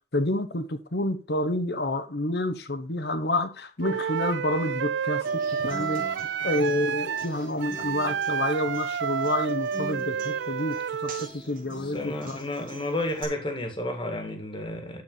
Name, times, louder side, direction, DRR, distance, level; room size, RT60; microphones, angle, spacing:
voice 1, 0.1-6.0 6.4-12.4, left 1 dB, 65° left, 1.1 m, -29 dB
Wind instrument woodwind instrument, 3.8-11.3, right 7 dB, 80° right, 0.4 m, -30 dB
Human voice / Acoustic guitar, 5.2-13.2, right 1 dB, 50° right, 3.6 m, -44 dB
voice 2, 11.1-15.0, left 1 dB, 30° left, 2.0 m, -32 dB
12.5 x 4.6 x 5.5 m
head